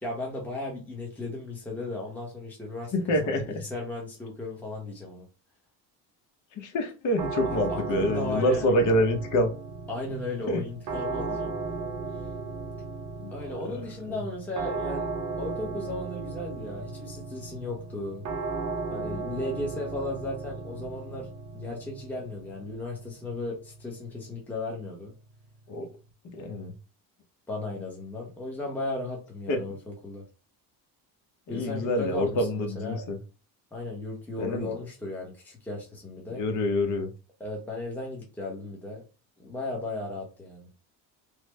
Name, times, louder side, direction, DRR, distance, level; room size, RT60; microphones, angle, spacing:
voice 1, 0.0-5.3 7.4-8.8 9.9-11.5 13.3-18.2 18.9-25.1 27.5-30.2 31.5-33.0 33.7-36.5 37.4-39.0 39.4-40.7, left 2 dB, 5° left, -2 dB, 0.8 m, -36 dB
voice 2, 2.9-3.4 6.6-9.5 10.5-10.6 13.2-13.3 25.7-25.9 26.3-26.7 29.5-29.6 31.5-33.2 34.4-34.7 36.3-37.1, left 1 dB, 50° left, 4 dB, 0.9 m, -26 dB
sound 1, 7.2-26.1, right 4 dB, 45° right, 0.7 m, -36 dB
3.2 x 2.1 x 3.2 m, 0.33 s
cardioid pair, 140°, 39 cm